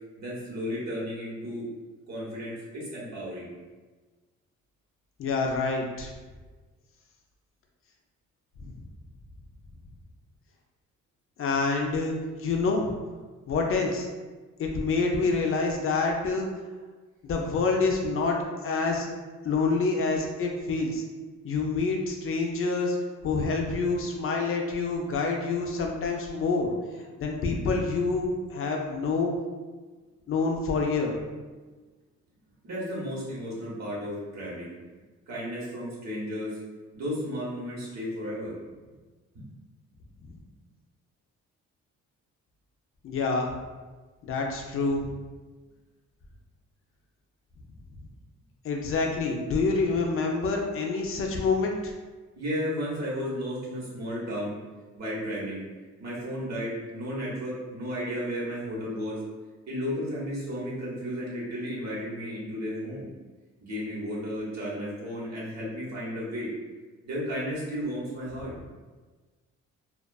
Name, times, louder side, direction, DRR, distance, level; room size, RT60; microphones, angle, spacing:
voice 1, 0.2-1.7 2.1-3.5 32.6-34.7 35.3-36.6 36.9-38.5 39.3-39.5 52.3-54.6 55.0-55.6 56.0-59.2 59.7-63.1 63.6-66.5 67.0-68.5, equal, 60° right, -6 dB, 1.1 m, -33 dB
voice 2, 5.2-6.1 8.6-8.8 11.4-13.0 13.5-14.1 14.6-16.5 17.2-18.4 18.6-19.1 19.4-21.0 21.4-23.0 23.2-26.7 27.2-29.3 30.3-31.2 40.2-40.3 43.0-43.5 44.2-45.1 48.6-51.9, left 4 dB, 45° left, 1 dB, 0.4 m, -27 dB
2.3 x 2.3 x 2.3 m, 1.3 s
cardioid pair, 90°, 30 cm